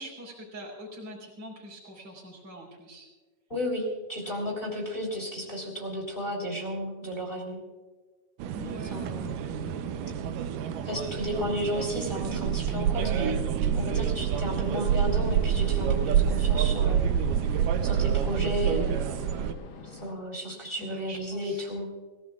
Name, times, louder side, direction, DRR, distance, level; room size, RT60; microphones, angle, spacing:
voice 1, 0.0-3.1 4.2-4.4 8.5-9.0 11.1-11.4 20.8-21.7, equal, 30° right, -4 dB, 4.6 m, -44 dB
voice 2, 3.5-7.6 8.9-9.3 10.8-13.3 13.7-17.0 17.8-19.0 19.9-21.9, equal, 15° left, -1 dB, 3.6 m, -33 dB
sound 1, 8.4-19.5, right 8 dB, 75° right, 2.3 m, -27 dB
sound 2, 14.3-20.1, left 4 dB, 50° left, 1.6 m, -46 dB
27.0 x 17.0 x 2.4 m, 1.3 s
omnidirectional pair, 4.0 m